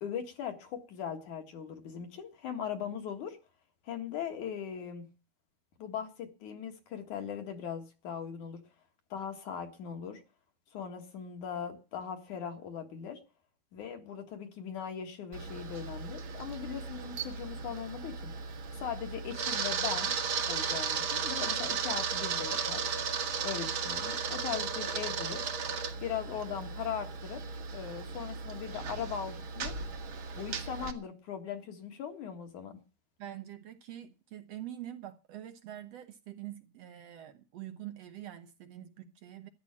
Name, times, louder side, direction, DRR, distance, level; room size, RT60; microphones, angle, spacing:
voice 1, 0.0-3.4 3.9-5.1 5.8-8.6 9.1-10.2 10.7-13.2 13.7-18.3 18.8-20.1 20.5-22.8 23.4-25.4 26.0-27.4 27.7-29.8 30.3-32.8, left 8 dB, 60° left, 2.9 m, -39 dB
Camera, 15.3-30.9, right 6 dB, 55° right, 1.5 m, -35 dB
voice 2, 33.2-39.5, right 12 dB, 70° right, 1.5 m, -45 dB
13.5 x 10.0 x 7.2 m
omnidirectional pair, 4.3 m